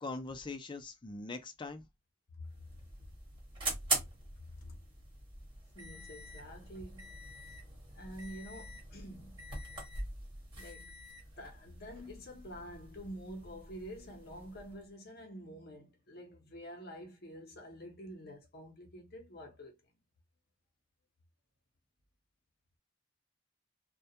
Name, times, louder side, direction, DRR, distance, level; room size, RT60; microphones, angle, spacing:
voice 1, 0.0-1.9, left 3 dB, 25° left, 0.4 m, -42 dB
sound 1, 2.4-14.8, right 2 dB, 25° right, 1.0 m, -43 dB
voice 2, 4.4-4.8 5.7-7.1 7.9-9.3 10.6-10.9 11.4-19.8, equal, 55° left, 0.7 m, -48 dB
2.2 x 2.1 x 2.8 m
head